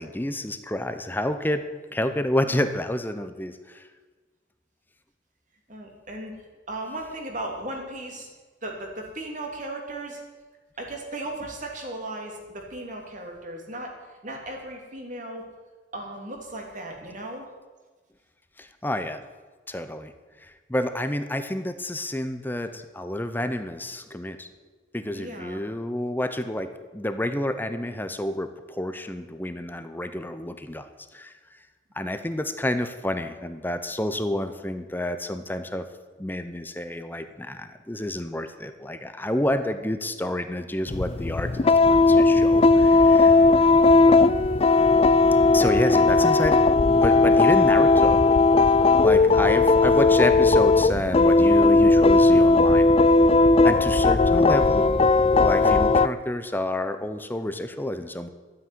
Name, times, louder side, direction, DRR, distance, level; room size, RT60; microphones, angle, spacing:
voice 1, 0.0-1.6 1.9-3.8 18.6-19.2 19.7-20.1 20.4-24.5 24.9-30.9 31.1-31.3 31.9-35.9 36.2-43.7 45.5-46.6 46.9-48.2 49.0-52.9 53.6-54.8 55.4-58.3, left 1 dB, 10° left, 9 dB, 0.8 m, -29 dB
voice 2, 5.7-6.3 6.7-8.3 8.6-10.2 10.8-15.5 15.9-17.5 25.1-25.6, right 1 dB, 45° right, 2 dB, 3.0 m, -36 dB
sound 1, 40.9-56.1, left 3 dB, 35° left, 0.4 m, -17 dB
13.0 x 9.3 x 9.4 m, 1.4 s
head